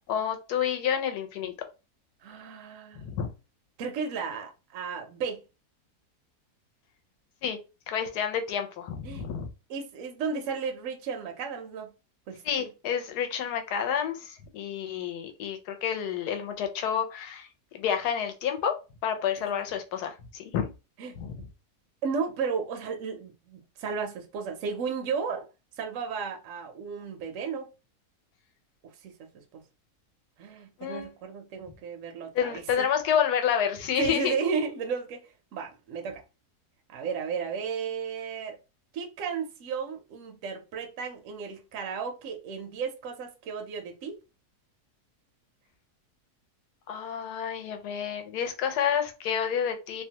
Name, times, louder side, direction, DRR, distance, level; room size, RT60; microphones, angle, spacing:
voice 1, 0.1-1.5 3.0-3.3 7.4-7.6 7.9-9.5 12.4-17.5 17.7-18.7 19.0-20.7 21.2-21.4 30.8-31.1 32.3-34.3 46.9-50.0, left 8 dB, 85° left, 1.1 m, -29 dB
voice 2, 2.2-3.2 3.8-5.4 9.0-9.3 9.7-11.9 12.3-12.7 19.4-19.5 21.0-21.2 22.0-25.5 25.8-27.7 29.0-29.1 29.5-29.6 30.4-32.9 34.0-35.2 35.5-36.2 36.9-38.6 38.9-44.2, right 5 dB, 70° right, 0.8 m, -34 dB
2.8 x 2.1 x 2.8 m
omnidirectional pair, 1.7 m